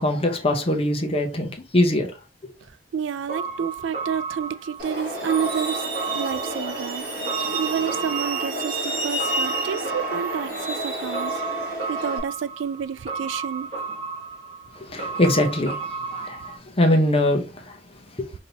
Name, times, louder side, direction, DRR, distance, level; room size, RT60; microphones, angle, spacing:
voice 1, 0.0-2.1 2.4-2.5 14.8-15.8 16.1-17.8 18.2-18.3, left 1 dB, 30° left, 0.8 m, -22 dB
voice 2, 2.9-5.8 6.1-7.0 7.5-11.4 11.9-13.7 16.2-16.3, right 7 dB, 70° right, 0.3 m, -29 dB
sound 1, 3.3-16.6, right 5 dB, 35° right, 1.4 m, -33 dB
Truck, 4.8-12.2, right 1 dB, 50° right, 2.1 m, -29 dB
5.3 x 2.8 x 2.8 m
head